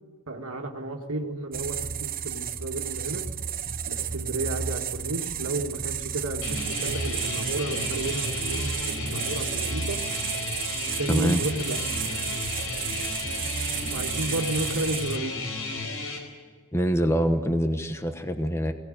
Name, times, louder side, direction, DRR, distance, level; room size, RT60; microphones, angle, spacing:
voice 1, 0.3-3.2 3.9-10.0 11.0-11.8 13.9-15.4, right 2 dB, 80° right, 3 dB, 2.1 m, -32 dB
sound 1, 1.5-15.2, right 8 dB, 40° right, 0.9 m, -32 dB
sound 2, 6.4-16.2, left 3 dB, 75° left, 4.5 m, -33 dB
voice 2, 11.1-11.4 16.7-18.7, equal, 10° left, 7 dB, 1.1 m, -25 dB
21.5 x 17.5 x 9.2 m, 1.5 s
head